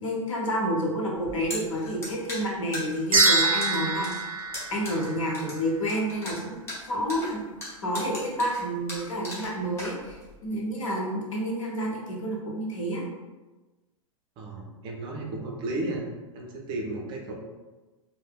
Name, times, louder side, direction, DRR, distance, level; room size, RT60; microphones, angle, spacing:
voice 1, 0.0-4.3 4.7-6.6 6.8-7.4 7.8-13.0, equal, 65° left, -3 dB, 0.8 m, -29 dB
sound 1, 1.2-10.4, left 1 dB, 15° left, 0.9 m, -38 dB
sound 2, 3.1-5.6, right 3 dB, 85° right, 0.4 m, -25 dB
voice 2, 14.4-16.0 16.3-17.3, right 2 dB, 30° right, -1 dB, 0.4 m, -33 dB
3.2 x 2.0 x 2.3 m, 1.2 s
figure-of-eight pair, 95°, 18 cm